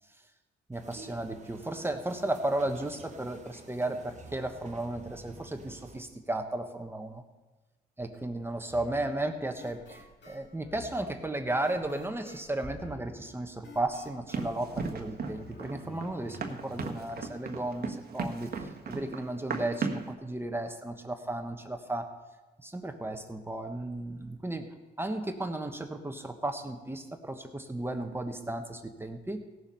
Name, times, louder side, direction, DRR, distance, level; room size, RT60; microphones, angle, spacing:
voice 1, 0.7-7.2 8.0-22.1 22.6-24.7 25.0-29.4, right 1 dB, 10° right, 5 dB, 1.2 m, -34 dB
sound 1, 0.7-6.0, right 4 dB, 35° right, 1.3 m, -50 dB
sound 2, 8.7-17.0, left 3 dB, 65° left, 2.7 m, -51 dB
Run, 14.3-20.1, right 4 dB, 50° right, 1.4 m, -36 dB
17.0 x 7.2 x 5.5 m, 1.2 s
cardioid pair, 90°, 20 cm